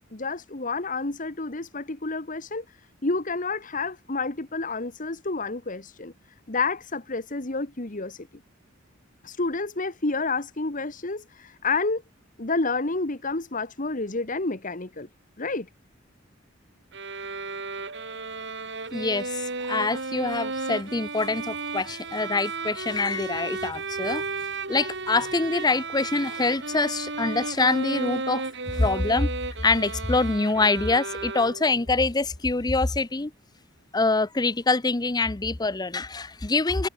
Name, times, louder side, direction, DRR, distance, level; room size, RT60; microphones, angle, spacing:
voice 1, 0.1-2.8 3.0-6.1 6.5-8.3 9.2-12.0 12.4-15.1 15.4-15.7, left 3 dB, 40° left, 1.7 m, -29 dB
sound 1, 16.9-31.9, right 3 dB, 60° right, 5.2 m, -34 dB
voice 2, 18.9-24.2 24.7-29.3 29.6-33.3 33.9-36.9, left 3 dB, 20° left, 0.7 m, -25 dB
head